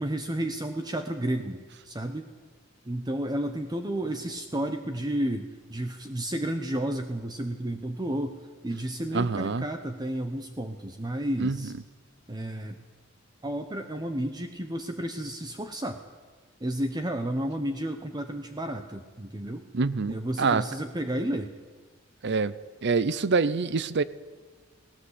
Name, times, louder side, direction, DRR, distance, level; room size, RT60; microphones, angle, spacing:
voice 1, 0.0-2.3 2.9-11.7 12.3-12.8 13.4-16.0 16.6-19.6 20.1-21.5, right 1 dB, 20° right, 7 dB, 0.9 m, -32 dB
voice 2, 9.1-9.6 11.4-11.6 19.7-20.6 22.2-22.5 22.8-24.0, right 4 dB, 55° right, 17 dB, 0.7 m, -25 dB
19.0 x 18.0 x 8.2 m, 1.4 s
head